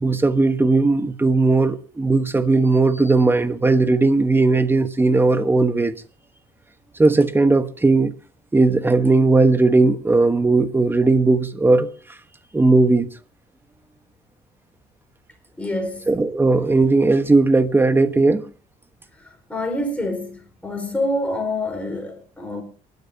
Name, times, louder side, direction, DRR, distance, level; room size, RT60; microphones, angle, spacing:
voice 1, 0.0-6.0 7.0-8.1 8.5-11.9 12.5-13.1 16.1-18.4, right 3 dB, 15° right, 1.2 m, -17 dB
voice 2, 15.6-16.0 19.5-22.6, left 1 dB, 5° left, 4.7 m, -26 dB
28.5 x 12.0 x 2.8 m
cardioid pair, 110°, 17 cm